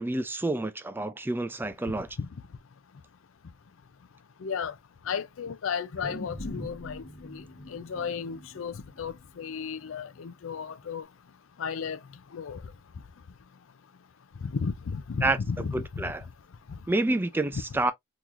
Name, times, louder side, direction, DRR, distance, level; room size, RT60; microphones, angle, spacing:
voice 1, 0.0-2.1 15.2-16.2 16.9-17.9, right 2 dB, 10° right, 0.3 m, -28 dB
voice 2, 4.4-4.7 5.1-7.4 7.7-11.1 11.6-12.0 12.3-12.6 14.4-16.0 17.5-17.6, left 6 dB, 80° left, 0.5 m, -34 dB
sound 1, 6.0-10.5 10.9-11.0, left 1 dB, 60° left, 1.2 m, -42 dB
3.7 x 3.0 x 2.4 m
head